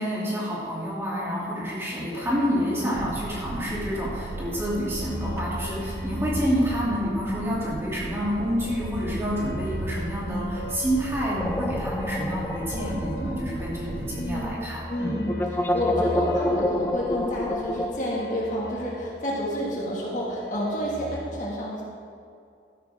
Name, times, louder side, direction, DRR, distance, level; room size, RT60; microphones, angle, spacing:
voice 1, 0.0-15.2, equal, 15° right, -7 dB, 2.9 m, -28 dB
sound 1, 2.2-3.8 4.1-7.6 8.5-19.9 20.2-21.2, left 1 dB, 70° left, 1.4 m, -39 dB
Boat Water vehicle, 2.9-14.6, right 3 dB, 60° right, 0.4 m, -37 dB
sound 2, 11.4-13.9 14.2-14.3 15.3-18.0, left 1 dB, 10° left, 0.5 m, -28 dB
voice 2, 13.1-14.5 14.9-15.3 15.7-21.8, equal, 45° left, -4 dB, 2.1 m, -29 dB
13.0 x 10.5 x 3.7 m, 2.4 s
head